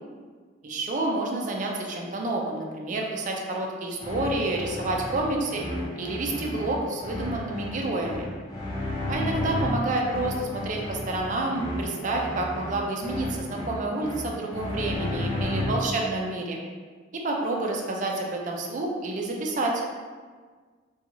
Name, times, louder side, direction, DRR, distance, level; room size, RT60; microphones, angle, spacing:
voice 1, 0.6-5.6 6.0-8.3 9.1-16.6 17.1-19.8, right 2 dB, 40° right, 0 dB, 0.4 m, -29 dB
sound 1, 4.0-16.0, left 1 dB, 20° left, 0.6 m, -33 dB
2.9 x 2.3 x 2.6 m, 1.5 s
head